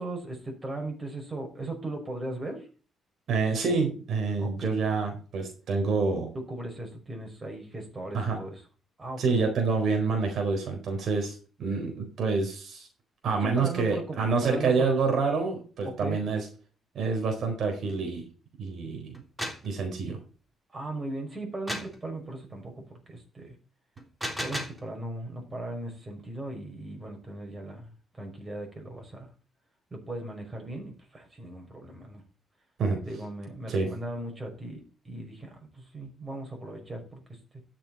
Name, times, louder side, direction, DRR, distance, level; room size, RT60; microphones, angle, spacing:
voice 1, 0.0-2.7 4.4-4.8 6.3-8.6 9.0-9.4 13.4-14.2 14.4-14.9 15.8-16.2 20.7-23.6 24.4-29.3 29.9-32.2 33.1-37.6, right 2 dB, 25° right, 2 dB, 5.9 m, -38 dB
voice 2, 3.3-6.3 8.1-8.4 9.2-12.9 13.2-16.5 16.9-18.2 18.6-19.1 19.6-20.2 32.8-33.0 33.7-33.9, right 4 dB, 65° right, 3 dB, 4.2 m, -27 dB
sound 1, 19.1-19.7 21.7-22.0 24.0-24.8, equal, 10° right, 3.4 m, -34 dB
13.0 x 7.6 x 4.3 m, 0.37 s
cardioid pair, 90°, 0 cm